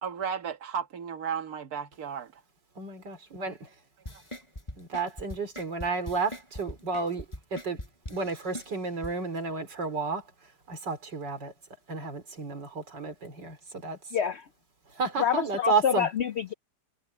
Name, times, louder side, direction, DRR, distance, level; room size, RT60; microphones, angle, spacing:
voice 1, 0.0-2.4, right 7 dB, 60° right, 1.9 m, -34 dB
voice 2, 2.8-3.7 4.8-7.3 7.5-7.8 8.1-10.3 10.7-11.5 11.9-14.0 14.9-16.1, right 4 dB, 85° right, 4.3 m, -32 dB
sound 1, 4.0-9.1 9.5-9.6, left 1 dB, 15° left, 4.6 m, -41 dB
voice 3, 14.1-14.4 15.2-16.5, left 8 dB, 70° left, 0.6 m, -27 dB
omnidirectional pair, 1.9 m